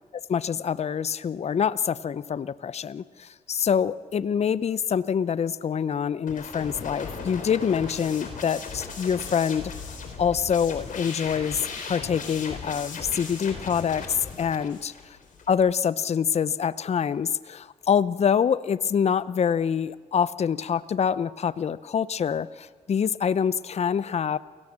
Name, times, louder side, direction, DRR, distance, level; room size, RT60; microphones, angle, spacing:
voice 1, 0.3-14.9 15.5-24.4, left 7 dB, 45° left, 18 dB, 0.7 m, -26 dB
sound 1, 6.3-15.5, left 5 dB, 60° left, 4.3 m, -37 dB
28.5 x 17.5 x 7.5 m, 1.5 s
supercardioid pair, 65°, 15 cm